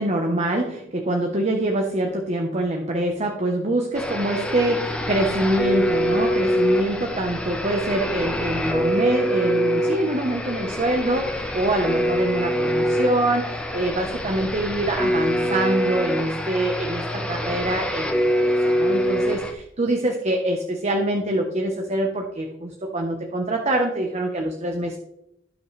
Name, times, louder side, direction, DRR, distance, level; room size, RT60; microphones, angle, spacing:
voice 1, 0.0-25.0, right 1 dB, 35° right, 2 dB, 1.1 m, -25 dB
sound 1, 3.9-19.5, equal, 5° left, 1.3 m, -24 dB
17.0 x 5.8 x 3.3 m, 0.82 s
head